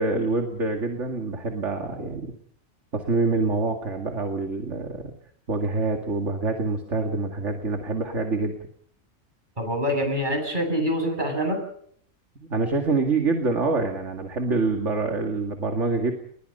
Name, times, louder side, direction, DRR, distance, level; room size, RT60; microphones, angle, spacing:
voice 1, 0.0-2.3 2.9-5.1 5.5-8.6 12.5-16.1, right 3 dB, 60° right, 4 dB, 2.5 m, -26 dB
voice 2, 9.6-11.6, equal, 35° right, 4 dB, 8.3 m, -25 dB
30.0 x 21.5 x 5.5 m, 0.64 s
omnidirectional pair, 1.4 m